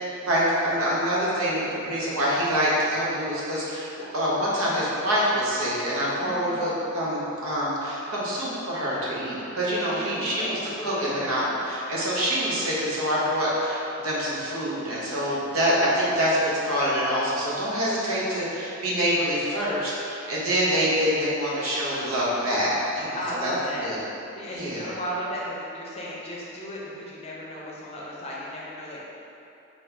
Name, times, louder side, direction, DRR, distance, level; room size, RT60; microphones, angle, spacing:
voice 1, 0.2-3.9 4.1-23.5 23.8-24.0 24.5-24.9, equal, 80° right, -6 dB, 0.9 m, -26 dB
voice 2, 1.6-2.2 6.2-6.7 9.9-11.6 23.1-23.9 24.3-29.0, equal, 30° left, -5 dB, 0.6 m, -35 dB
4.2 x 2.9 x 3.3 m, 2.9 s
head